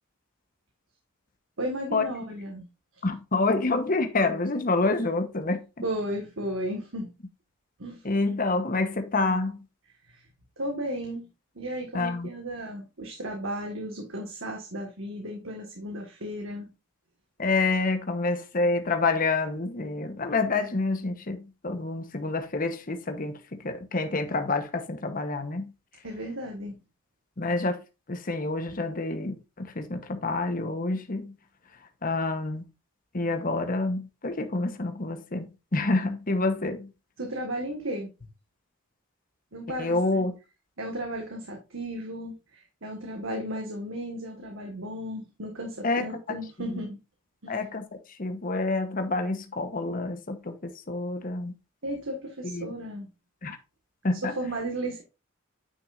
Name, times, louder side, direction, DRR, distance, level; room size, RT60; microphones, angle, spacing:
voice 1, 1.6-2.7 5.8-7.1 7.8-8.0 10.1-10.3 10.6-11.3 11.5-16.7 26.0-26.7 37.2-38.1 39.5-40.2 40.8-47.0 47.4-47.5 51.8-53.1 54.2-55.0, right 1 dB, 65° right, 1.6 m, -34 dB
voice 2, 3.0-5.6 8.0-9.6 11.9-12.3 17.4-25.7 27.4-27.8 28.1-31.3 32.0-32.7 33.1-36.9 39.8-40.3 45.8-46.1 46.7-46.8 47.5-51.5 52.4-52.7 53.4-53.6 54.0-54.3, left 3 dB, 40° left, 1.0 m, -28 dB
9.6 x 6.0 x 2.5 m
head